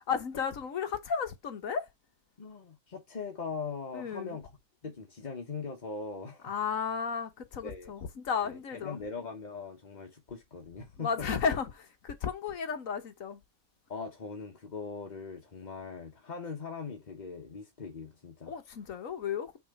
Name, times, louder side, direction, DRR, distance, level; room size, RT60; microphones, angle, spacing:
voice 1, 0.1-1.9 3.9-4.4 6.4-9.0 11.0-13.4 18.5-19.6, left 6 dB, 55° left, 1.3 m, -33 dB
voice 2, 2.4-4.5 4.8-6.5 7.6-7.9 8.4-11.3 13.9-18.5, left 5 dB, 35° left, 0.8 m, -41 dB
6.1 x 3.7 x 5.2 m
omnidirectional pair, 1.9 m